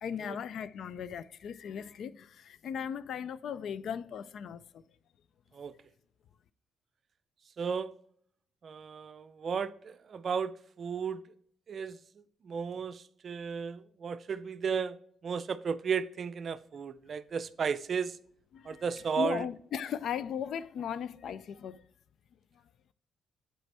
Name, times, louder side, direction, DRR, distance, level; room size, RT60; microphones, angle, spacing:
voice 1, 0.0-2.2 2.6-4.6 19.2-21.8, left 8 dB, 65° left, 0.3 m, -37 dB
voice 2, 7.6-7.9 8.6-11.2 11.7-15.0 15.2-18.2 18.7-19.5, right 6 dB, 50° right, 0.4 m, -34 dB
7.9 x 4.4 x 3.3 m
cardioid pair, 90°, 0 cm